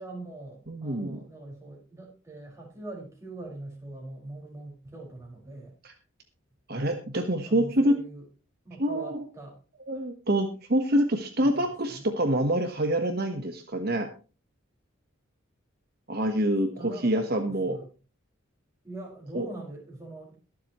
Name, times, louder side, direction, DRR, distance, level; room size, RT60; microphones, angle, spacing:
voice 1, 0.0-5.7 7.4-8.2 8.6-9.6 9.9-10.0 11.4-12.0 16.8-17.9 18.8-20.3, right 2 dB, 15° right, -2 dB, 5.4 m, -42 dB
voice 2, 0.7-1.2 5.8-5.9 6.7-8.0 8.8-9.2 9.9-14.1 16.1-17.8 19.3-19.5, right 1 dB, 50° right, 5 dB, 1.3 m, -26 dB
22.5 x 7.6 x 3.1 m, 0.34 s
head